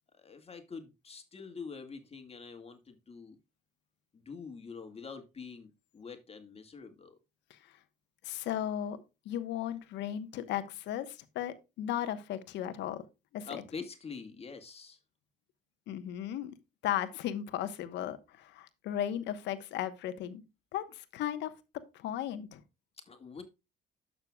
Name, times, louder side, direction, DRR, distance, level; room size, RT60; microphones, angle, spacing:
voice 1, 0.2-3.4 4.1-7.2 13.5-15.0 23.0-23.4, left 5 dB, 35° left, 1.9 m, -45 dB
voice 2, 8.2-13.0 13.3-13.6 15.9-16.5 16.8-20.4 20.7-21.5 21.9-22.6, left 11 dB, 75° left, 1.1 m, -36 dB
12.0 x 6.7 x 2.3 m
supercardioid pair, 80°, 18 cm